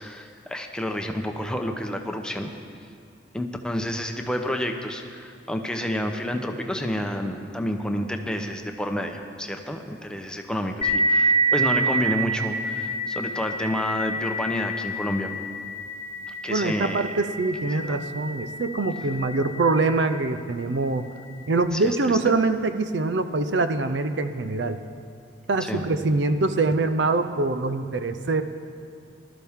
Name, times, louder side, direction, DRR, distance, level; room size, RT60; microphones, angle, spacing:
voice 1, 0.0-2.5 3.3-15.4 16.3-17.0 17.7-18.0 21.7-22.2 25.6-25.9, left 1 dB, 5° left, 4 dB, 0.8 m, -29 dB
sound 1, 10.8-20.1, right 2 dB, 35° left, 1.2 m, -28 dB
voice 2, 16.5-21.1 21.5-24.8 25.5-28.4, right 3 dB, 70° right, 9 dB, 0.6 m, -24 dB
19.5 x 12.5 x 3.6 m, 2.3 s
head